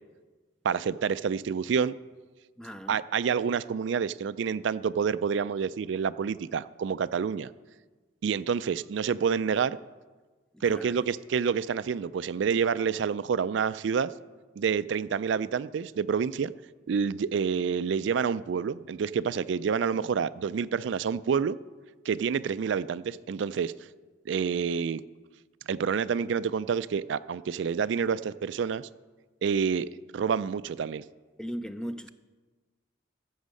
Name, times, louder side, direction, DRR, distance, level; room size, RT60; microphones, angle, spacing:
voice 1, 0.6-1.9 2.9-7.5 8.2-9.8 10.6-14.1 14.6-16.5 16.9-21.6 22.1-23.7 24.3-25.0 25.7-28.9 29.4-31.0, right 6 dB, 70° right, 15 dB, 0.3 m, -28 dB
voice 2, 2.6-3.0 10.5-10.9 31.4-32.1, equal, 5° left, 10 dB, 0.4 m, -37 dB
15.0 x 7.2 x 6.4 m, 1.3 s
head